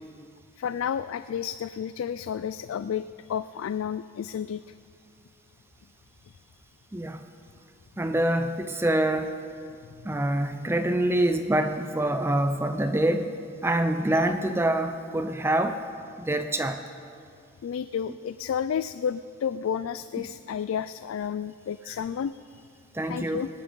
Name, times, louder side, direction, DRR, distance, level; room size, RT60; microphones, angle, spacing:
voice 1, 0.6-4.6 10.1-10.2 17.6-22.6 23.1-23.5, left 8 dB, 80° left, 13 dB, 0.3 m, -31 dB
voice 2, 6.9-7.2 8.0-9.4 10.0-13.3 13.6-15.8 16.2-16.8 20.2-20.3 22.9-23.5, right 1 dB, 10° right, 8 dB, 0.5 m, -25 dB
19.5 x 10.0 x 5.3 m, 2.3 s
head